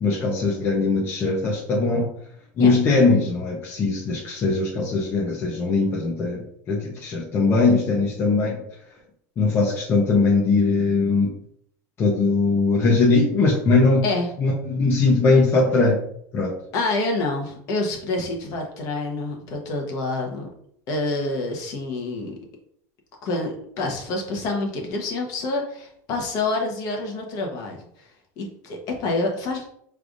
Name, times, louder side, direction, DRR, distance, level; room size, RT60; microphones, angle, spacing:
voice 1, 0.0-2.1 2.6-8.6 9.4-11.3 12.0-14.0 14.4-16.0 16.3-16.5, left 3 dB, 30° left, -3 dB, 0.8 m, -20 dB
voice 2, 16.7-20.5 20.9-22.3 23.2-28.1 28.4-29.7, left 2 dB, 50° left, 1 dB, 1.2 m, -27 dB
4.9 x 3.4 x 2.6 m, 0.67 s
supercardioid pair, 140°, 8 cm